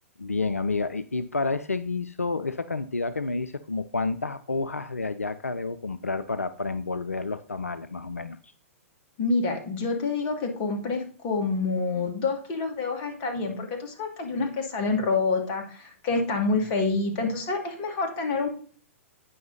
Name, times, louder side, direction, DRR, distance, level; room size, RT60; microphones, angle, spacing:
voice 1, 0.2-8.4, left 3 dB, 90° left, 13 dB, 0.4 m, -30 dB
voice 2, 9.2-18.5, left 3 dB, 35° left, 3 dB, 2.3 m, -27 dB
9.2 x 5.7 x 4.1 m, 0.42 s
figure-of-eight pair, 110°, 8 cm